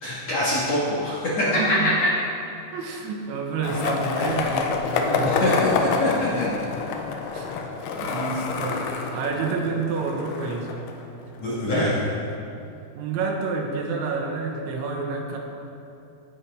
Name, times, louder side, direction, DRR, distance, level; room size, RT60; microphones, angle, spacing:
voice 1, 0.0-1.6 5.3-6.5 11.4-11.9, left 1 dB, 55° left, -8 dB, 2.0 m, -25 dB
voice 2, 1.5-2.0 2.7-5.4 7.3-7.6 8.0-8.8 9.1-10.7 11.7-12.2 13.0-15.4, right 4 dB, 85° right, 1 dB, 3.6 m, -29 dB
Skateboard, 3.6-11.6, left 4 dB, 80° left, 2.4 m, -27 dB
18.0 x 9.5 x 3.5 m, 2.6 s
omnidirectional pair, 5.3 m